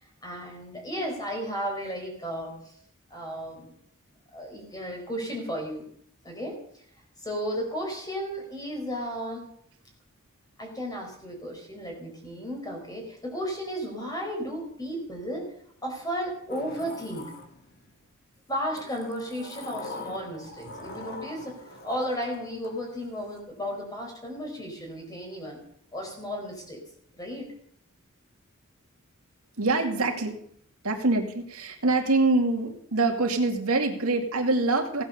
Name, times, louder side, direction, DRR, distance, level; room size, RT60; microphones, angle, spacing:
voice 1, 0.0-2.7 3.1-3.7 4.3-5.9 6.2-6.6 7.2-9.5 10.6-15.5 15.8-17.3 18.5-25.6 25.9-26.8 27.1-27.5, equal, 15° left, 1 dB, 4.6 m, -34 dB
Sliding door, 16.5-18.0 18.8-23.4, left 2 dB, 45° left, 1.9 m, -43 dB
voice 2, 29.6-30.4 30.8-35.0, right 3 dB, 80° right, 3 dB, 2.3 m, -25 dB
17.0 x 9.4 x 6.7 m, 0.66 s
head